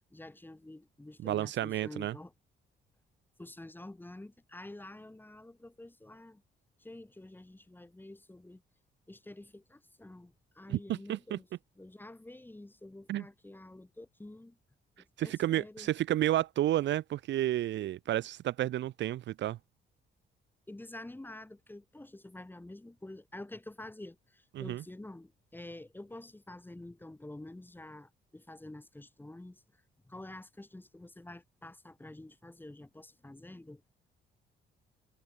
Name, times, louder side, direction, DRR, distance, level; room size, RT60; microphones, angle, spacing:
voice 1, 0.0-2.3 3.4-6.4 6.8-8.6 9.1-11.5 11.8-14.6 15.2-15.9 20.7-29.6 30.0-33.8, left 1 dB, 10° left, 1.5 m, -48 dB
voice 2, 1.2-2.1 10.7-11.4 13.1-13.2 15.2-19.6 24.6-24.8, right 13 dB, 65° right, 0.6 m, -31 dB
cardioid pair, 90°, 20 cm